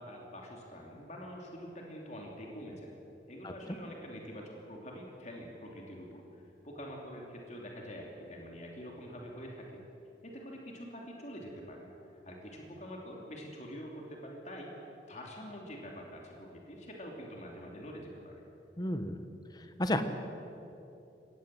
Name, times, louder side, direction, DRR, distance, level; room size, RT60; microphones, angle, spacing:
voice 1, 0.0-2.9 3.3-9.8 10.2-11.9 12.2-14.7 15.1-18.3, equal, 40° left, -1 dB, 3.0 m, -45 dB
voice 2, 18.8-19.2 19.8-20.0, left 1 dB, 25° left, 9 dB, 1.3 m, -31 dB
23.0 x 18.5 x 7.7 m, 2.9 s
head